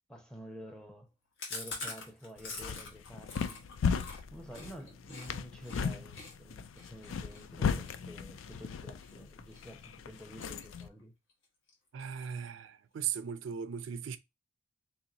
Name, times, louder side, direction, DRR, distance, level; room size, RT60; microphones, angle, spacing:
voice 1, 0.1-1.1 1.5-3.6 4.3-11.1, equal, 5° left, 0.7 m, -49 dB
Chewing mastication, 1.4-5.3 5.6-5.8 6.1-9.1 9.5-9.8 10.1-11.0 11.3-11.4 11.7-11.8 12.1-12.7, left 3 dB, 70° left, 1.3 m, -45 dB
sound 1, 2.4-10.9, left 6 dB, 85° left, 0.4 m, -37 dB
voice 2, 11.9-14.2, right 8 dB, 75° right, 0.4 m, -37 dB
3.1 x 2.9 x 3.8 m
head